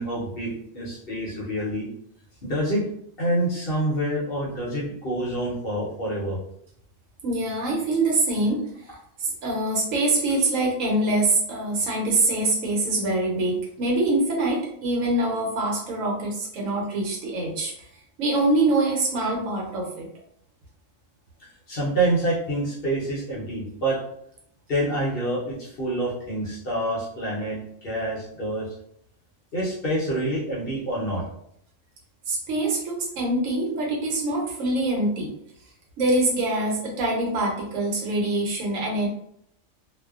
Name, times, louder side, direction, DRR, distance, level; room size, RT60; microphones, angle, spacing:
voice 1, 0.0-1.9 2.4-2.9 3.2-6.4 21.4-24.0 24.7-28.7 29.5-31.3, right 1 dB, 50° left, -5 dB, 0.8 m, -27 dB
voice 2, 7.2-8.6 9.2-17.7 18.2-20.1 32.3-35.3 36.0-39.1, right 2 dB, 75° right, -1 dB, 1.1 m, -24 dB
2.5 x 2.1 x 2.3 m, 0.71 s
omnidirectional pair, 1.4 m